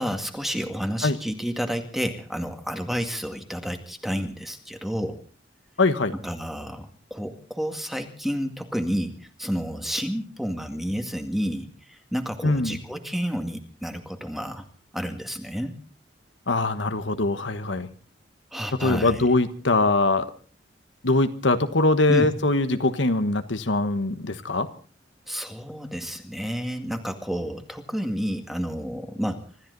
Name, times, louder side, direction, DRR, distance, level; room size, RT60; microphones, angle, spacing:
voice 1, 0.0-5.2 6.2-9.1 9.4-14.6 14.9-15.8 18.5-19.2 22.1-22.3 25.3-29.4, equal, ahead, 6 dB, 2.0 m, -30 dB
voice 2, 5.8-6.1 12.4-12.8 16.5-17.9 18.8-20.2 21.0-24.7, left 2 dB, 85° left, 9 dB, 1.4 m, -22 dB
26.0 x 13.5 x 4.0 m, 0.41 s
head